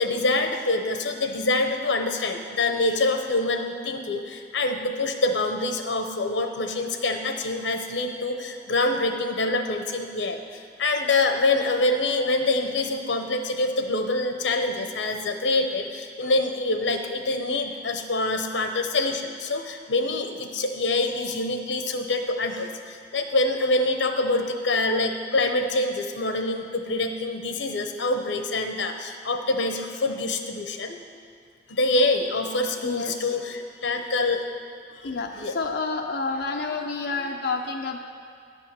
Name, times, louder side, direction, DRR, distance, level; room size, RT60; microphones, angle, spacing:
voice 1, 0.0-31.0 31.7-34.4 35.0-35.5, left 2 dB, 80° left, 5 dB, 0.9 m, -25 dB
voice 2, 32.8-33.3 35.0-38.0, left 3 dB, 65° left, 2 dB, 0.5 m, -29 dB
10.5 x 5.5 x 7.3 m, 2.3 s
head